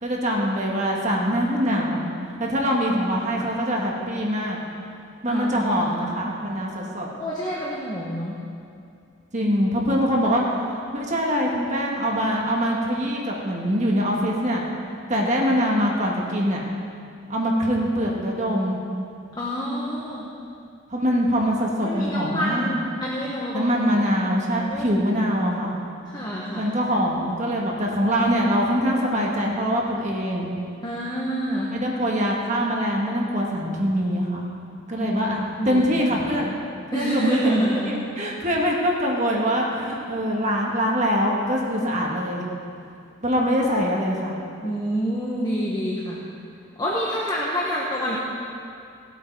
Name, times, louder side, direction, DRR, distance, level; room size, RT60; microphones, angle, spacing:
voice 1, 0.0-4.6 5.2-7.1 9.3-14.6 15.1-16.6 17.3-18.8 20.9-22.7 23.5-25.7 26.5-30.5 31.7-34.4 34.9-35.4 35.6-36.5 36.9-42.4 43.2-44.3, equal, 35° right, -2 dB, 1.6 m, -23 dB
voice 2, 5.3-6.1 7.2-8.4 19.4-20.3 21.8-23.9 24.7-25.0 25.4-25.6 26.1-26.7 30.8-31.8 35.0-35.3 35.6-36.5 36.9-38.0 44.6-46.2 46.8-48.2, equal, 20° left, -5 dB, 1.3 m, -28 dB
17.0 x 8.3 x 4.7 m, 2.5 s
head